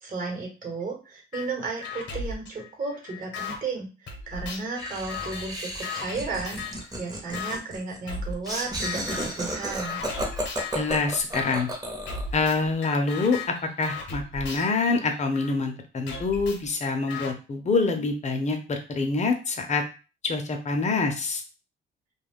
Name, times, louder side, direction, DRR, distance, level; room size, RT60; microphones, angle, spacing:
voice 1, 0.0-3.9 4.3-6.6 7.0-10.0, right 4 dB, 40° right, 0 dB, 1.1 m, -33 dB
sound 1, 1.3-1.5 1.8-3.6 4.1-6.9 7.3-7.6 8.1-8.6 8.8-9.4 9.8-10.8 11.3-11.6 12.1-15.5 16.1-17.3, left 4 dB, 65° left, 0.8 m, -36 dB
Laughter, 4.8-12.3, equal, 20° right, 0.8 m, -33 dB
voice 2, 10.7-11.7 12.3-19.8 20.2-21.4, left 3 dB, 35° left, 4 dB, 0.7 m, -26 dB
2.3 x 2.1 x 3.5 m, 0.32 s
cardioid pair, 90°, 20 cm